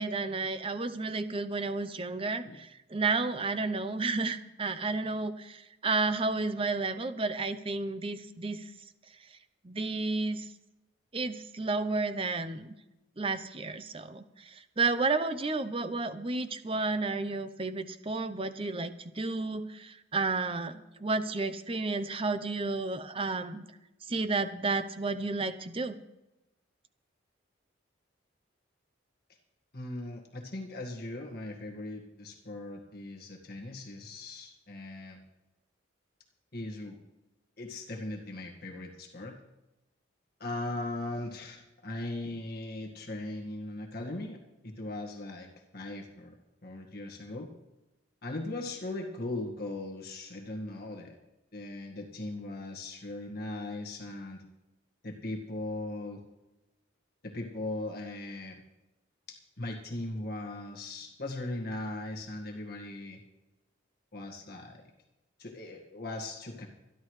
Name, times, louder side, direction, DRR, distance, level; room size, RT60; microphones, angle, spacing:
voice 1, 0.0-8.7 9.6-10.5 11.1-12.7 13.2-23.6 24.1-26.0, right 3 dB, 30° right, 11 dB, 0.7 m, -32 dB
voice 2, 29.7-35.2 36.5-37.0 37.6-39.4 40.4-45.5 45.7-46.3 46.6-47.5 48.2-51.2 51.5-54.4 55.0-56.2 57.2-58.6 59.3-63.2 64.1-64.8 65.4-66.7, left 2 dB, 50° left, 1 dB, 1.8 m, -39 dB
26.5 x 11.0 x 3.2 m, 0.99 s
head